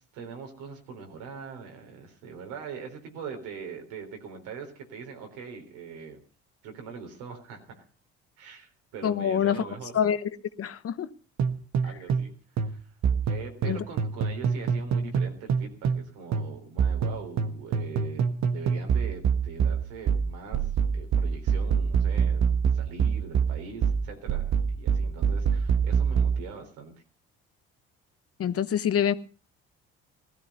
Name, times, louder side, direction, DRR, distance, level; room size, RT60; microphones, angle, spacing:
voice 1, 0.0-6.2 6.6-7.9 8.4-9.9 11.8-12.9 13.3-26.9, right 5 dB, 85° right, 4 dB, 4.1 m, -42 dB
voice 2, 9.0-9.7 9.9-10.3 10.6-11.1 13.7-13.8 28.4-29.1, left 9 dB, 50° left, 13 dB, 1.1 m, -26 dB
sound 1, 11.4-12.3 12.6-16.1 16.3-26.4, right 6 dB, 65° right, 1.5 m, -25 dB
17.0 x 13.5 x 5.4 m, 0.38 s
supercardioid pair, 70°, 30 cm